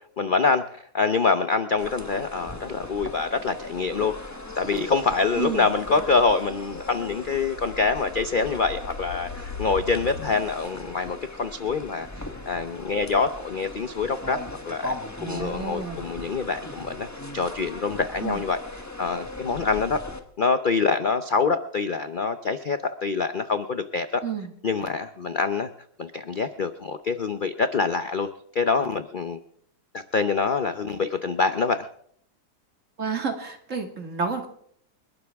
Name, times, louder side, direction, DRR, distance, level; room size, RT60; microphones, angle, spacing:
voice 1, 0.2-0.6 0.9-4.1 4.6-14.4 14.6-14.9 15.2-17.1 17.3-18.6 19.0-20.0 20.4-24.2 24.6-25.7 26.0-29.4 29.9-31.9, left 4 dB, 50° left, 9 dB, 0.6 m, -25 dB
sound 1, 1.8-20.2, left 2 dB, 10° left, 1.2 m, -39 dB
voice 2, 5.4-5.7 15.2-16.0 18.2-18.4 24.2-24.5 33.0-34.5, right 5 dB, 50° right, 4 dB, 2.5 m, -30 dB
sound 2, 6.7-11.0, left 5 dB, 80° left, 2.2 m, -40 dB
29.5 x 12.5 x 3.5 m, 0.64 s
omnidirectional pair, 1.8 m